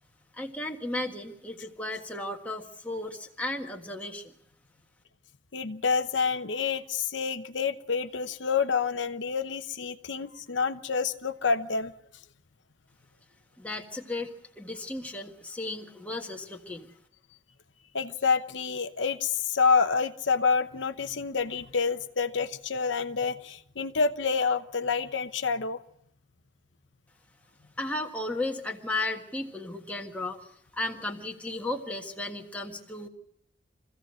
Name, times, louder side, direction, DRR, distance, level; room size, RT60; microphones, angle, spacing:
voice 1, 0.3-4.3 13.6-14.3 14.6-16.9 27.8-33.1, left 2 dB, 10° left, 1 dB, 1.6 m, -35 dB
voice 2, 5.5-11.9 17.9-25.8, left 5 dB, 75° left, 8 dB, 0.9 m, -28 dB
24.0 x 15.5 x 7.7 m, 0.73 s
head